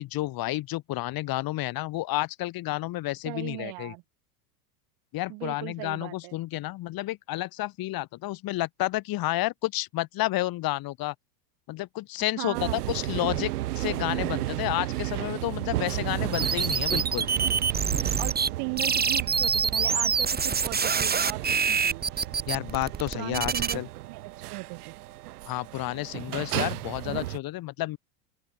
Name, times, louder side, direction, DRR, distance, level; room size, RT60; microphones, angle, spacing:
voice 1, 0.0-3.9 5.1-11.1 11.7-17.3 22.5-23.9 25.4-28.0, left 17 dB, 50° left, 7.0 m, -31 dB
voice 2, 3.3-4.0 5.3-6.4 12.4-12.9 18.2-22.0 23.1-23.8 24.1-24.9 27.1-27.3, right 31 dB, 60° right, 7.4 m, -37 dB
sound 1, 12.5-27.4, right 16 dB, 80° right, 5.4 m, -34 dB
sound 2, 16.3-18.5 18.8-23.8, right 6 dB, 20° right, 4.5 m, -26 dB
open air
hypercardioid pair, 105°, 46 cm